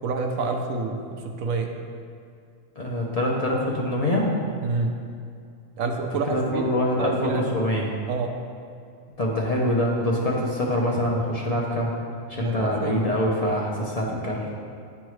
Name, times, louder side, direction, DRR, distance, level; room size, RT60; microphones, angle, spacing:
voice 1, 0.0-1.7 4.6-4.9 5.8-6.6 7.0-7.4 8.1-8.3 12.3-13.1, right 4 dB, 80° right, 3 dB, 1.0 m, -28 dB
voice 2, 2.8-4.3 6.1-7.9 9.2-11.9 12.3-14.5, left 1 dB, 40° left, -3 dB, 0.6 m, -24 dB
9.9 x 3.5 x 3.1 m, 2.4 s
omnidirectional pair, 1.4 m